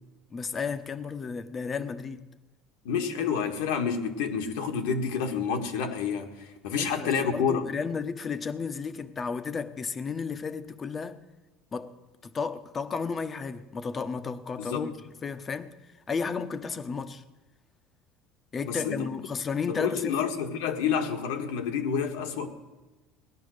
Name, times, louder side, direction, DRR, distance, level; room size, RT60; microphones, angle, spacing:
voice 1, 0.3-2.3 6.7-11.2 11.7-11.9 12.2-15.0 15.2-15.7 16.1-17.2 18.5-20.2, left 5 dB, 25° left, 0.9 m, -33 dB
voice 2, 2.9-7.7 14.6-14.9 18.6-19.1 19.7-22.5, left 6 dB, 85° left, 1.8 m, -29 dB
18.5 x 11.5 x 6.5 m
cardioid pair, 130°, 0 cm